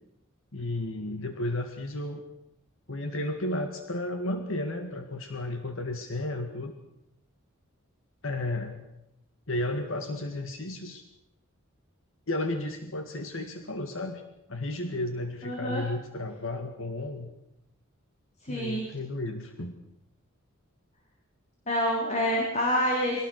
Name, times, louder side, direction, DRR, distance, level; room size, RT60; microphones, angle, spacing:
voice 1, 0.5-2.2 2.9-6.7 8.2-8.8 9.5-11.0 12.3-14.2 14.5-17.3 18.5-19.7, left 1 dB, 65° left, 6 dB, 1.9 m, -33 dB
voice 2, 15.4-15.8 18.4-18.9 21.7-23.2, equal, 35° left, -1 dB, 4.3 m, -27 dB
24.5 x 18.5 x 6.6 m, 0.86 s
head